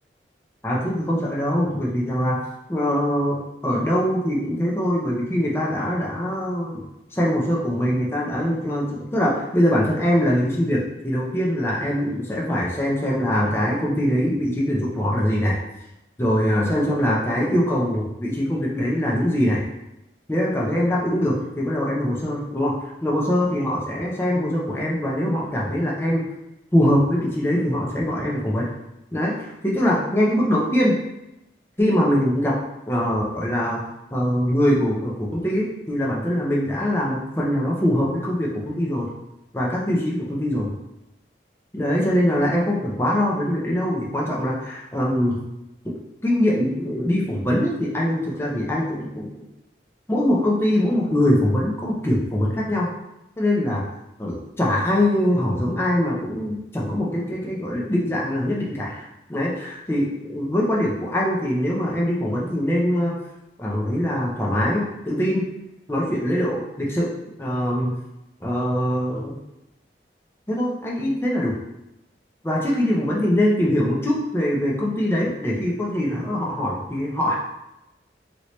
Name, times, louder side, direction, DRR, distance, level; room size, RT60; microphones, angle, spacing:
voice 1, 0.6-2.4 2.7-6.8 7.1-15.6 16.2-19.6 20.3-22.7 23.0-26.3 26.7-28.7 29.1-31.0 31.8-32.6 32.9-33.8 34.1-39.1 39.5-40.7 41.7-45.4 45.8-46.0 46.2-49.3 50.1-52.9 53.4-53.8 54.2-63.2 63.6-65.5 65.9-67.1 67.4-68.0 68.4-69.4 70.5-71.5 72.4-77.4, equal, 15° left, -4 dB, 0.5 m, -23 dB
3.0 x 2.8 x 3.1 m, 0.90 s
head